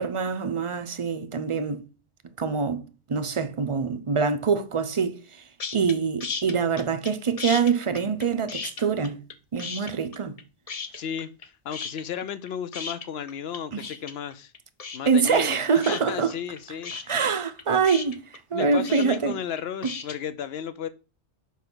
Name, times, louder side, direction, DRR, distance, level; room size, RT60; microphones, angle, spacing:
voice 1, 0.0-1.8 2.4-2.8 3.1-5.2 5.7-9.2 9.5-10.4 13.7-13.8 15.1-16.3 17.1-18.2 18.5-19.4 19.8-19.9, right 5 dB, 40° right, 0.5 m, -24 dB
sound 1, 5.6-5.9 6.2-7.1 7.4-9.3 9.6-10.4 10.7-11.5 11.7-20.2, left 5 dB, 40° left, 0.6 m, -35 dB
voice 2, 10.9-14.5 14.9-17.3 18.5-20.9, left 8 dB, 70° left, 0.8 m, -34 dB
5.6 x 4.9 x 6.1 m
omnidirectional pair, 1.2 m